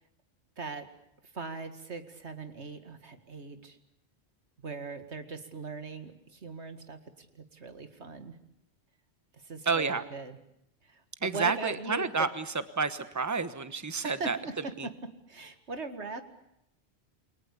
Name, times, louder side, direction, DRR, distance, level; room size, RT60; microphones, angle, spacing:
voice 1, 0.6-0.9 1.3-3.8 4.6-7.0 7.5-8.3 9.5-10.4 11.2-12.3 14.0-14.5 14.8-14.9 15.3-16.2, right 3 dB, 90° right, 8 dB, 2.3 m, -39 dB
voice 2, 9.6-10.0 11.2-12.4 12.8-14.4 14.8-14.9, right 4 dB, 15° right, 12 dB, 1.2 m, -30 dB
28.5 x 22.0 x 8.4 m, 0.79 s
omnidirectional pair, 1.1 m